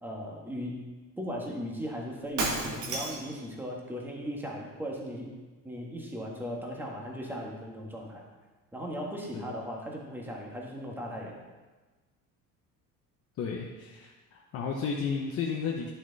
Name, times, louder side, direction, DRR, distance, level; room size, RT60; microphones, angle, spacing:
voice 1, 0.0-0.8 1.2-5.3 5.6-8.2 8.7-11.4, equal, 5° right, -2 dB, 1.6 m, -37 dB
Shatter, 2.4-3.4, right 3 dB, 65° right, 1.9 m, -31 dB
voice 2, 13.4-15.9, left 5 dB, 45° left, 0 dB, 0.9 m, -33 dB
11.5 x 6.4 x 4.0 m, 1.2 s
cardioid pair, 150°, 33 cm